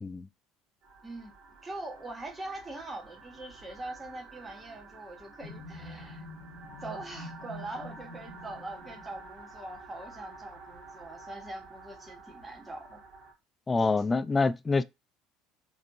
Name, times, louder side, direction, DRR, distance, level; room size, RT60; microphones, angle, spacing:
sound 1, 0.8-13.3, right 3 dB, 45° right, 2.0 m, -50 dB
voice 1, 1.0-1.3 1.6-6.2 6.8-13.0 13.8-13.9, right 2 dB, 15° right, 1.3 m, -42 dB
sound 2, 5.4-9.3, left 1 dB, 75° left, 1.1 m, -46 dB
voice 2, 13.7-14.8, left 4 dB, 20° left, 0.3 m, -26 dB
4.1 x 3.0 x 2.6 m
hypercardioid pair, 65°, 0 cm